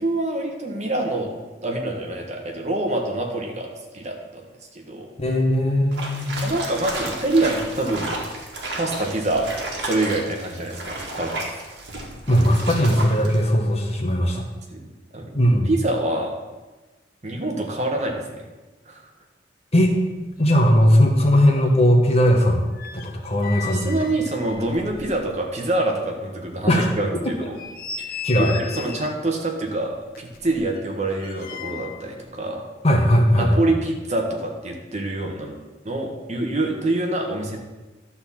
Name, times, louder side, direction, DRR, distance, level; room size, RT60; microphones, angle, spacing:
voice 1, 0.0-1.3 1.6-4.4 4.7-5.1 6.4-8.1 8.8-11.4 14.7-14.8 15.1-15.4 15.7-16.3 17.2-18.4 18.8-19.0 23.6-27.6 28.0-29.9 30.2-32.6 33.4-35.6 35.8-37.6, right 2 dB, 40° right, 1 dB, 1.4 m, -26 dB
voice 2, 5.2-6.5 12.3-14.4 15.3-15.7 19.7-19.9 20.4-22.6 22.9-23.9 26.7-26.9 27.4-27.5 28.2-28.5 32.8-33.5, equal, 35° left, 1 dB, 1.3 m, -18 dB
sound 1, 5.9-13.4, right 2 dB, 65° right, 1.9 m, -32 dB
sound 2, 20.1-20.2 20.4-21.4 21.7-25.6 26.0-26.1 26.6-26.7 27.3-29.2 30.1-32.1 32.3-32.5, left 7 dB, 50° left, 0.9 m, -37 dB
12.0 x 4.2 x 7.2 m, 1.2 s
head